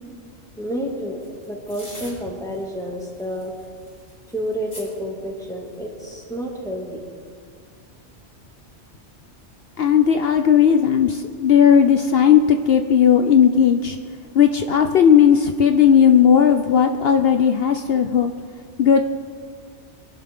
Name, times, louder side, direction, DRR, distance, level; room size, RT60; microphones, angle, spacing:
voice 1, 0.6-3.5 4.3-7.0, equal, 5° left, -2 dB, 2.2 m, -30 dB
sound 1, 1.2-2.1 2.5-2.7 3.0-4.8 5.7-6.1, left 1 dB, 80° left, 5.2 m, -42 dB
voice 2, 9.8-14.0 14.3-18.3 18.8-19.0, left 8 dB, 60° left, 7 dB, 0.8 m, -15 dB
23.5 x 11.5 x 3.7 m, 2.2 s
omnidirectional pair, 1.2 m